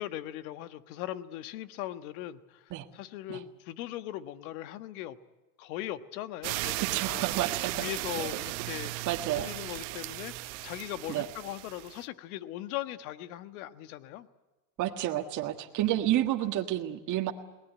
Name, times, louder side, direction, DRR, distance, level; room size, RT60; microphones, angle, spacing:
voice 1, 0.0-5.2 5.6-7.3 7.7-8.9 9.4-14.3, left 13 dB, 70° left, 12 dB, 1.5 m, -39 dB
sound 1, 6.4-12.0, right 19 dB, 65° right, 1.2 m, -36 dB
voice 2, 6.8-7.8 8.2-8.3 9.0-9.5 11.1-11.2 14.8-17.3, right 13 dB, 40° right, 3 dB, 1.6 m, -30 dB
22.5 x 18.5 x 9.3 m, 1.1 s
supercardioid pair, 120°, 44 cm